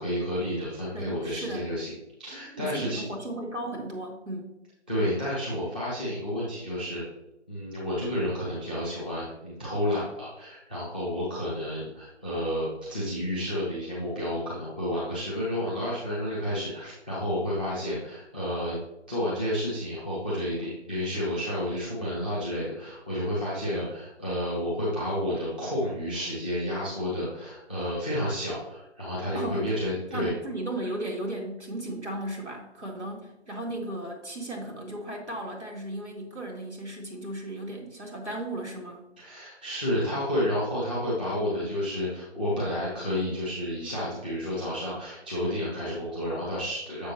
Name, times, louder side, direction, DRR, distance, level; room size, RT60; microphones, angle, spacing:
voice 1, 0.0-1.9 2.2-3.0 4.9-7.0 7.5-18.8 19.1-30.3 39.2-47.1, left 1 dB, 10° right, -8 dB, 0.8 m, -30 dB
voice 2, 0.9-1.7 2.3-4.5 29.3-29.8 30.1-39.0, right 1 dB, 75° right, 0 dB, 2.2 m, -35 dB
7.2 x 6.3 x 2.9 m, 0.92 s
figure-of-eight pair, 155°, 35 cm